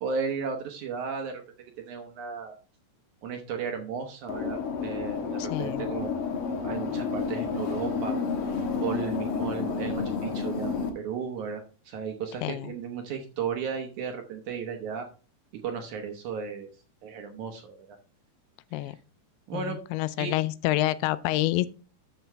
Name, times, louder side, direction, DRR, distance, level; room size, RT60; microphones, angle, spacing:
voice 1, 0.0-1.4 1.8-2.5 3.2-6.1 6.6-8.2 8.8-15.1 15.5-16.7 17.0-18.0 18.8-18.9 19.5-19.8 20.2-20.3, right 6 dB, 65° right, 2.0 m, -34 dB
sound 1, 4.3-10.9, left 5 dB, 60° left, 1.4 m, -30 dB
voice 2, 5.4-5.9 12.4-12.7 18.7-19.0 19.5-21.7, left 16 dB, 85° left, 2.6 m, -28 dB
12.5 x 6.0 x 3.4 m
omnidirectional pair, 4.5 m